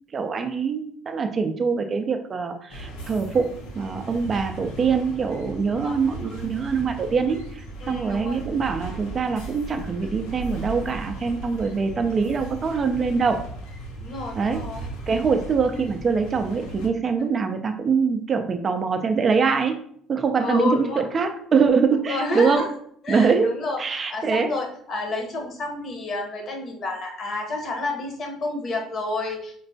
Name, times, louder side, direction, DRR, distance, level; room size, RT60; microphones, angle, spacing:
voice 1, 0.1-3.5 3.7-7.4 7.9-13.4 14.4-14.6 15.1-19.8 20.1-22.6 23.1-23.5 23.8-24.5, right 5 dB, 30° right, 6 dB, 0.3 m, -23 dB
sound 1, 2.7-16.9, right 2 dB, 90° left, 0.7 m, -37 dB
voice 2, 7.8-8.4 11.6-11.7 14.0-14.9 20.4-21.0 22.1-22.6 23.0-29.6, left 2 dB, 45° left, 2 dB, 0.8 m, -30 dB
4.3 x 2.1 x 2.6 m, 0.63 s
cardioid pair, 120°, 0 cm